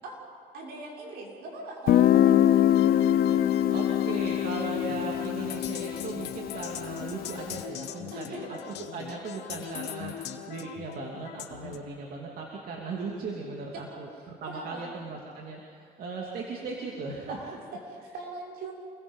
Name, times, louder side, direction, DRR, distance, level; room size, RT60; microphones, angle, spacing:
voice 1, 0.5-3.1 8.1-8.6 13.7-13.9 14.1-14.8 17.3-18.7, right 2 dB, 75° right, -2 dB, 6.5 m, -41 dB
Guitar, 1.9-7.4, left 11 dB, 65° left, 0.8 m, -24 dB
sound 1, 2.7-11.8, left 11 dB, 80° left, 1.4 m, -40 dB
voice 2, 3.7-8.3 8.9-17.4, right 4 dB, 60° right, -1 dB, 2.9 m, -38 dB
28.0 x 21.5 x 5.6 m, 2.4 s
cardioid pair, 110°, 17 cm